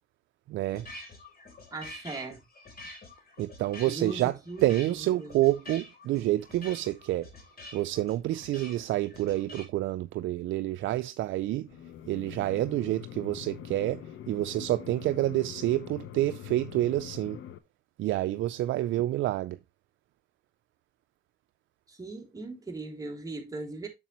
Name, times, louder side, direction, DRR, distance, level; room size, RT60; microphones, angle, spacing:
voice 1, 0.5-0.9 3.4-7.3 7.7-11.7 12.1-17.4 18.0-19.6, right 15 dB, 80° right, 0.4 m, -28 dB
sound 1, 0.7-9.7, left 2 dB, 50° left, 3.4 m, -47 dB
voice 2, 1.7-2.4 3.9-5.4 21.9-23.9, right 3 dB, 15° right, 2.9 m, -39 dB
sound 2, 11.7-17.6, left 10 dB, 80° left, 0.8 m, -43 dB
7.1 x 6.7 x 3.0 m
cardioid pair, 90°, 20 cm